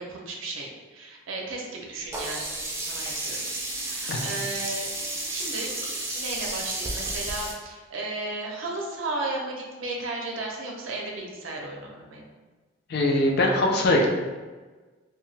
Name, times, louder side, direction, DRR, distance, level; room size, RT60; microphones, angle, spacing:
voice 1, 0.0-3.4 3.7-4.9 5.3-5.7 6.1-12.3, right 2 dB, 90° right, -1 dB, 0.5 m, -34 dB
Sink (filling or washing), 2.1-7.5, right 2 dB, 15° right, 0.3 m, -32 dB
voice 2, 12.9-14.1, left 1 dB, 55° left, 0 dB, 0.4 m, -21 dB
2.7 x 2.2 x 3.1 m, 1.3 s
head